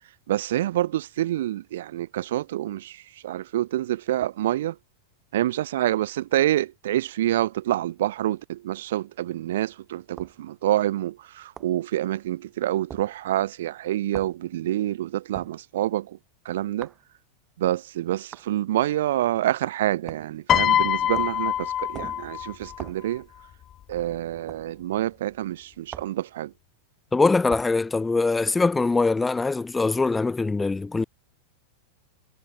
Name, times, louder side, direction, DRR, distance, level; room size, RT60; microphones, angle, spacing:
voice 1, 0.3-4.8 5.3-16.2 16.5-16.9 17.6-23.3 23.9-26.5, right 13 dB, 55° right, 1.9 m, -27 dB
sound 1, 10.2-10.4 11.6-11.8 12.9-13.1 14.1-14.4 15.3-15.6 16.8-17.0 18.3-18.5 20.1-20.4 21.1-21.4 21.9-22.3 22.8-23.1 24.5-24.7 25.9-26.2 27.5-27.8, right 9 dB, 25° right, 5.8 m, -41 dB
Piano, 20.5-22.9 23.9-24.2, left 11 dB, 30° left, 2.2 m, -24 dB
voice 2, 27.1-31.0, left 3 dB, 10° left, 0.6 m, -22 dB
figure-of-eight pair, 90°, 0 cm